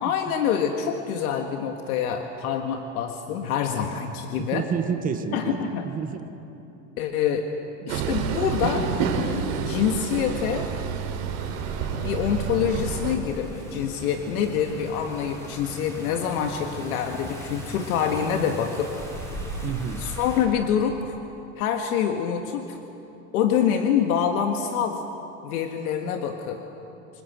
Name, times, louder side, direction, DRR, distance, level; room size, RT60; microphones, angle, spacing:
voice 1, 0.0-4.7 5.3-5.9 7.0-7.5 7.9-8.9 9.5-10.7 12.0-18.9 20.0-21.2 21.6-22.8 23.3-25.0 25.4-26.6, left 8 dB, 85° left, 4 dB, 1.8 m, -26 dB
voice 2, 4.4-6.2 7.8-8.1 19.6-20.0, right 6 dB, 20° right, 8 dB, 1.1 m, -30 dB
Train, 7.9-13.2, right 6 dB, 70° right, 4.0 m, -28 dB
sound 1, 11.4-20.4, right 1 dB, 5° left, 3.9 m, -38 dB
27.0 x 19.5 x 8.1 m, 2.9 s
supercardioid pair, 165°, 43 cm